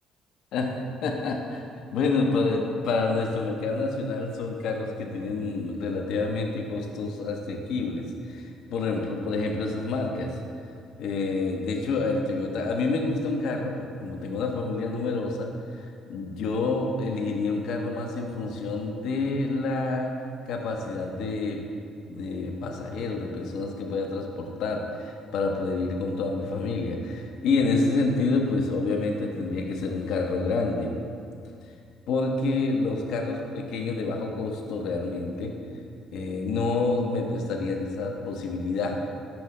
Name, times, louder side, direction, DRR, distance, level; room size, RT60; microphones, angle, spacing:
voice 1, 1.0-1.6 1.9-10.4 11.0-20.1 20.5-21.6 22.1-30.9 32.1-35.5 36.1-39.0, left 3 dB, 70° left, 2 dB, 0.6 m, -28 dB
5.7 x 5.4 x 3.1 m, 2.4 s
supercardioid pair, 65°, 0 cm